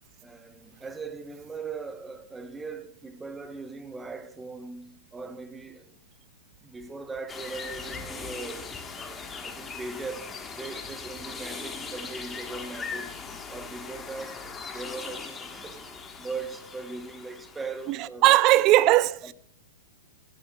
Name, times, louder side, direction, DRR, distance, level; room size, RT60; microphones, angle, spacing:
voice 1, 0.2-6.0 6.6-18.5 19.2-19.3, right 4 dB, 10° right, 0.8 m, -40 dB
sound 1, 7.3-18.0, left 5 dB, 15° left, 1.2 m, -39 dB
voice 2, 17.9-19.3, right 16 dB, 40° right, 0.4 m, -19 dB
14.0 x 9.4 x 2.2 m
hypercardioid pair, 120°, 0 cm